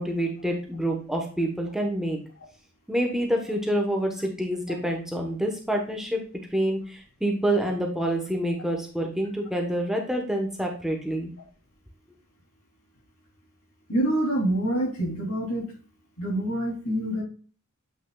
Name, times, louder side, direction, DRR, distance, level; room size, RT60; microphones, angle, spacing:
voice 1, 0.0-2.2 2.9-6.2 6.5-11.3, right 1 dB, ahead, 1 dB, 1.0 m, -27 dB
voice 2, 13.9-15.7 16.2-17.2, right 1 dB, 75° left, -3 dB, 3.3 m, -26 dB
8.1 x 5.8 x 2.3 m, 0.39 s
head